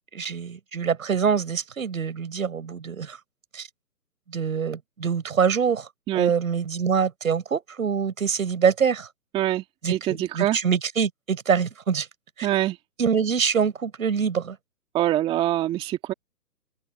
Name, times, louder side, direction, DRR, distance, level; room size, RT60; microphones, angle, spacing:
voice 1, 0.1-3.2 3.5-3.7 4.3-5.9 6.1-9.1 9.8-12.1 12.4-12.5 13.0-14.6, right 6 dB, 55° right, 6.7 m, -25 dB
voice 2, 9.3-10.6 12.4-12.8 14.9-16.1, right 13 dB, 10° right, 2.1 m, -24 dB
figure-of-eight pair, 145°, 48 cm